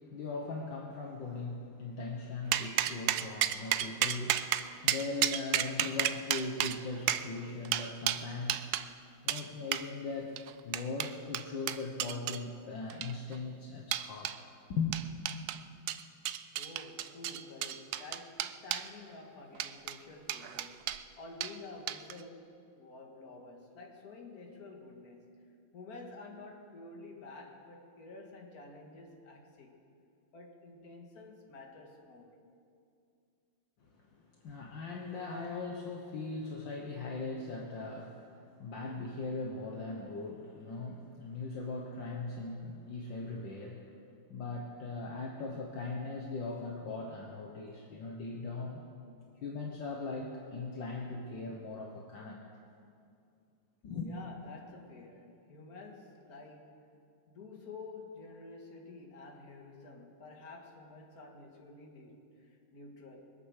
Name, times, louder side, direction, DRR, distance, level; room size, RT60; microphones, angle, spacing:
voice 1, 0.1-8.8 9.2-10.4 10.6-15.0 33.9-43.9 44.3-48.9 49.4-52.4 53.8-54.1, left 3 dB, 65° left, 0 dB, 1.8 m, -39 dB
sound 1, 2.5-8.9 9.3-9.4 9.7-9.9 10.4-12.4 12.9-13.4 13.9-14.4 14.9-15.6 15.9-18.9 19.5-20.0 20.3-21.0 21.4-21.5 21.9-22.2, right 12 dB, 85° right, 0.8 m, -32 dB
voice 2, 16.5-20.9 21.2-25.3 25.7-29.8 30.3-32.3 54.0-56.8 57.3-63.3, left 3 dB, 45° left, 1 dB, 2.2 m, -50 dB
23.5 x 8.8 x 6.6 m, 2.4 s
omnidirectional pair, 2.3 m